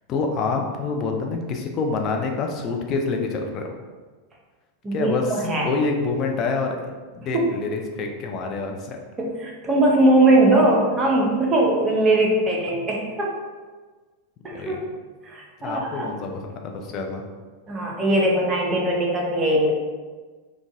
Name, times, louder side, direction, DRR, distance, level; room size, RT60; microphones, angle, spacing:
voice 1, 0.1-3.7 4.9-5.3 5.6-6.8 7.1-9.0 14.5-14.8 15.6-17.2, left 4 dB, 35° left, 3 dB, 0.5 m, -27 dB
voice 2, 4.8-5.7 7.3-7.5 9.2-13.3 14.4-14.8 15.2-16.1 17.7-19.7, right 1 dB, 20° right, -2 dB, 0.7 m, -20 dB
3.7 x 2.3 x 2.6 m, 1.4 s
figure-of-eight pair, 90°, 0 cm